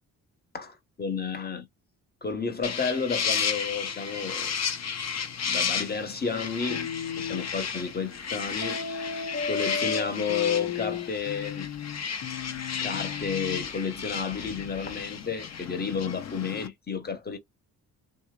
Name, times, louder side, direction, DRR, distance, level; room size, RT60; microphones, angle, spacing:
voice 1, 0.5-1.7 2.2-4.5 5.5-6.9 7.2-8.8 9.4-11.7 12.8-17.4, left 5 dB, 25° left, 1.0 m, -31 dB
sound 1, 2.6-16.7, left 7 dB, 45° left, 0.6 m, -33 dB
sound 2, 6.7-7.5 8.6-13.7, left 6 dB, 80° left, 0.8 m, -34 dB
2.9 x 2.0 x 2.3 m
supercardioid pair, 55°, 38 cm